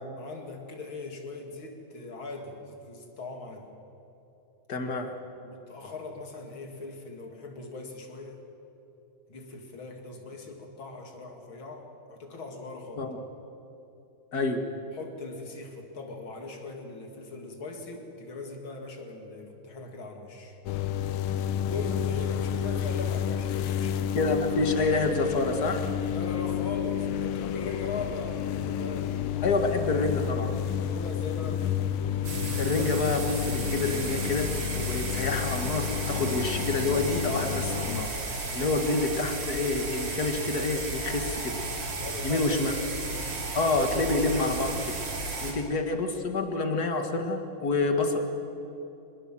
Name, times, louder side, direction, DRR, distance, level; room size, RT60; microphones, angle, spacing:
voice 1, 0.2-3.7 5.4-8.4 9.3-13.1 14.9-20.6 21.5-24.1 26.1-29.6 30.9-31.7 38.5-38.9 42.0-43.1, left 3 dB, 70° left, 3 dB, 3.3 m, -40 dB
voice 2, 4.7-5.1 13.0-13.2 14.3-14.6 24.1-25.9 29.4-30.5 32.6-38.1 38.5-41.6 42.2-42.7 43.5-45.0 45.4-48.2, left 3 dB, 45° left, 5 dB, 2.3 m, -28 dB
sound 1, 20.7-38.0, left 10 dB, 90° left, 1.7 m, -31 dB
sound 2, 32.2-45.5, right 2 dB, 85° right, 3.8 m, -34 dB
24.5 x 21.0 x 7.6 m, 3.0 s
omnidirectional pair, 2.3 m